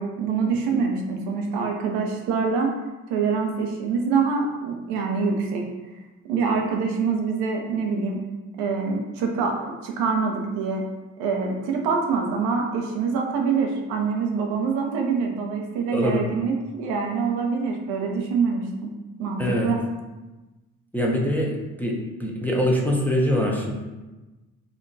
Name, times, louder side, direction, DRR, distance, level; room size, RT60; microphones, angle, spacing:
voice 1, 0.0-2.8 3.1-5.7 6.2-8.2 8.6-10.9 11.2-18.9 19.2-19.8, right 5 dB, 75° right, 1 dB, 0.6 m, -25 dB
voice 2, 15.9-16.3 19.4-19.7 20.9-23.7, equal, 5° left, -2 dB, 0.6 m, -23 dB
2.5 x 2.2 x 3.9 m, 1.1 s
hypercardioid pair, 55°, 41 cm